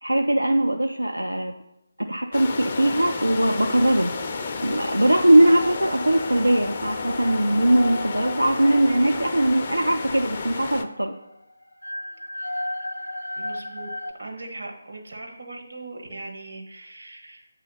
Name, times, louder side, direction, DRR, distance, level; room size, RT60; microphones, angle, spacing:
voice 1, 0.0-1.5 2.0-4.1 4.6-11.1, right 1 dB, 90° right, 4 dB, 0.4 m, -20 dB
sound 1, 2.3-10.8, left 4 dB, 35° left, 0.4 m, -32 dB
sound 2, 5.4-14.1, left 1 dB, 90° left, 0.5 m, -35 dB
voice 2, 13.4-13.9 14.2-17.5, right 2 dB, 60° right, 1 dB, 1.2 m, -39 dB
7.9 x 2.8 x 5.5 m, 0.88 s
figure-of-eight pair, 150°, 0 cm